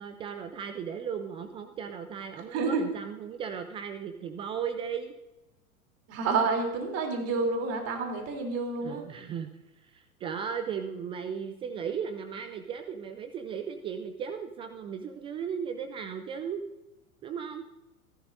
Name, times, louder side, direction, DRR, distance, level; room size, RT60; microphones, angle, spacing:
voice 1, 0.0-5.1 8.8-9.5 9.8-16.6 17.2-17.7, right 7 dB, 15° right, 8 dB, 0.4 m, -36 dB
voice 2, 2.4-2.8 6.1-9.0, right 4 dB, 35° right, 2 dB, 3.3 m, -29 dB
27.5 x 11.5 x 2.6 m, 1.0 s
figure-of-eight pair, 95°, 44 cm